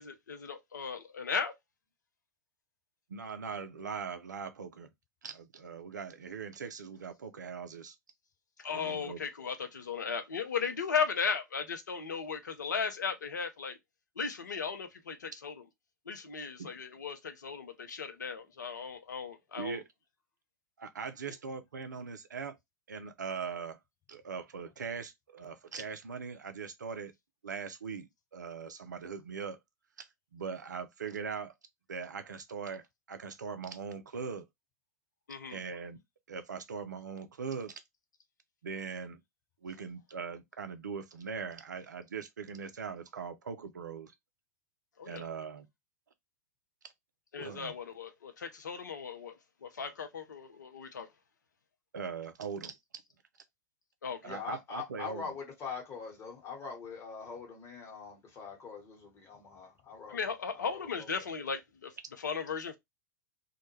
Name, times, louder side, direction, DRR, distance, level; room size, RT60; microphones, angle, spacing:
voice 1, 0.0-1.5 8.6-13.8 14.2-15.5 16.1-19.8 35.3-35.6 45.0-45.2 47.3-51.1 54.0-54.3 60.1-61.9 62.2-62.8, left 6 dB, 70° left, 0.5 m, -36 dB
voice 2, 3.1-4.9 5.2-8.0 8.7-9.2 16.6-16.7 19.6-19.8 20.8-22.5 22.9-23.8 24.1-27.1 27.4-29.6 30.0-31.5 31.9-32.8 33.1-34.5 35.5-36.0 36.3-37.8 38.6-39.2 39.6-44.1 45.1-45.7 47.4-47.7 51.9-52.8 54.2-55.3, right 5 dB, 75° right, 0.4 m, -40 dB
voice 3, 54.2-61.3, left 6 dB, 25° left, 1.1 m, -43 dB
2.2 x 2.1 x 3.0 m
figure-of-eight pair, 95°, 10 cm